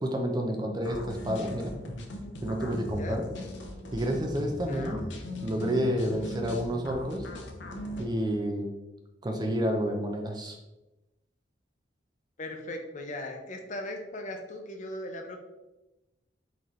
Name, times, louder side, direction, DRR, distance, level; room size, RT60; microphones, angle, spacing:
voice 1, 0.0-1.8 2.4-3.3 3.9-5.0 5.4-7.3 8.0-8.7 9.2-10.6, equal, 25° right, 3 dB, 0.5 m, -29 dB
sound 1, 0.8-8.1, left 1 dB, 80° left, 0.7 m, -39 dB
voice 2, 4.7-5.2 12.4-15.4, left 1 dB, 40° left, 4 dB, 0.6 m, -38 dB
4.3 x 4.0 x 3.1 m, 1.0 s
head